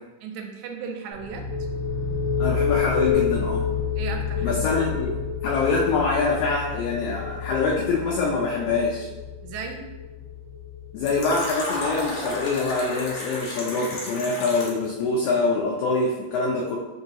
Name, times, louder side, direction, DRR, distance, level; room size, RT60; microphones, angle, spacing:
voice 1, 0.2-1.5 4.0-4.6 9.4-9.8, right 6 dB, 85° right, 3 dB, 1.9 m, -35 dB
sound 1, 1.1-12.6, left 6 dB, 45° right, 1.6 m, -29 dB
voice 2, 2.4-3.6 4.4-9.1 10.9-16.8, left 3 dB, 90° left, -2 dB, 1.4 m, -25 dB
Fill (with liquid), 11.1-14.9, left 1 dB, 65° left, 1.6 m, -32 dB
4.4 x 3.0 x 2.8 m, 1.1 s
omnidirectional pair, 3.4 m